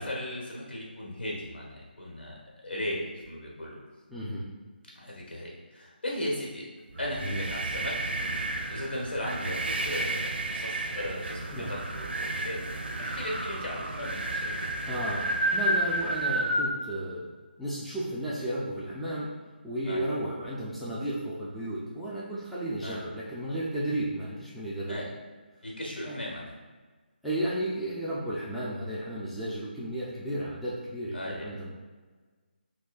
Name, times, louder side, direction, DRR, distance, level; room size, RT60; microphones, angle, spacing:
voice 1, 0.0-3.8 4.9-6.7 7.0-8.2 8.7-14.7 19.8-20.0 22.8-23.0 24.9-25.1 25.6-26.5 31.1-31.5, left 1 dB, 85° left, -2 dB, 1.4 m, -37 dB
voice 2, 4.1-4.5 7.2-7.4 11.5-11.7 14.9-17.3 17.6-19.3 19.6-25.1 26.1-26.2 27.2-31.7, right 1 dB, ahead, -9 dB, 0.4 m, -33 dB
sound 1, 6.9-16.7, right 1 dB, 75° right, 0.5 m, -31 dB
6.0 x 2.2 x 2.3 m, 1.4 s
figure-of-eight pair, 160°, 6 cm